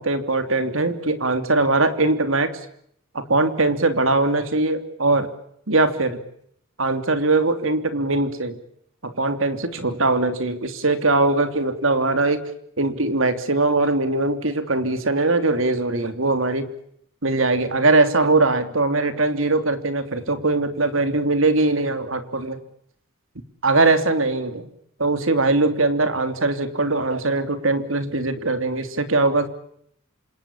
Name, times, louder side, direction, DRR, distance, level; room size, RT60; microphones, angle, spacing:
voice 1, 0.0-2.6 3.1-5.3 5.7-6.2 6.8-8.6 9.0-12.5 12.8-16.7 17.2-22.6 23.6-24.7 25.0-29.5, right 2 dB, 70° right, 10 dB, 3.1 m, -21 dB
28.0 x 27.0 x 7.2 m, 0.70 s
head